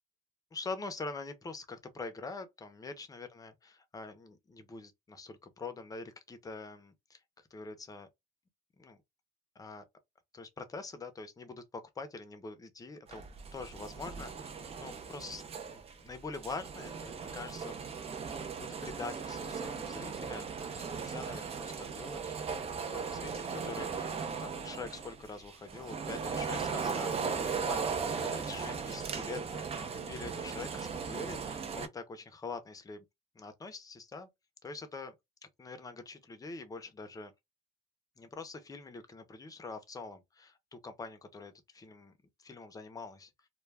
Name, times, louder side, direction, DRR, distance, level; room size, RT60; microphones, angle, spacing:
voice 1, 0.5-7.2 7.5-8.1 8.8-9.0 9.6-9.8 10.3-13.3 13.5-17.8 18.6-22.6 22.9-27.1 27.6-27.9 28.2-33.0 33.3-34.3 34.6-35.1 35.6-37.3 38.2-42.1 42.4-43.3, left 3 dB, 20° left, 0.6 m, -44 dB
sound 1, 13.1-31.9, right 5 dB, 35° right, 0.5 m, -38 dB
2.2 x 2.2 x 3.3 m
cardioid pair, 110°, 17 cm